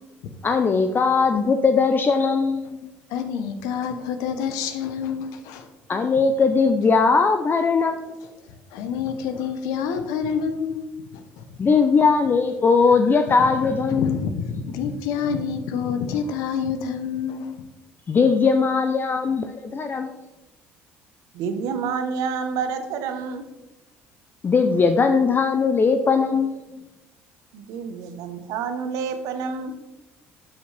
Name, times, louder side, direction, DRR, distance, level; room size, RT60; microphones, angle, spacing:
voice 1, 0.4-2.6 5.9-8.0 11.6-14.2 18.1-20.1 24.4-26.9, left 5 dB, 35° left, 7 dB, 0.6 m, -19 dB
voice 2, 3.1-5.7 8.7-10.8 11.1-11.5 13.4-17.6, left 6 dB, 75° left, 8 dB, 0.8 m, -28 dB
voice 3, 21.3-23.4 27.5-29.7, right 6 dB, 75° right, 8 dB, 0.9 m, -28 dB
12.0 x 5.2 x 3.3 m, 1.0 s
supercardioid pair, 70°, 6 cm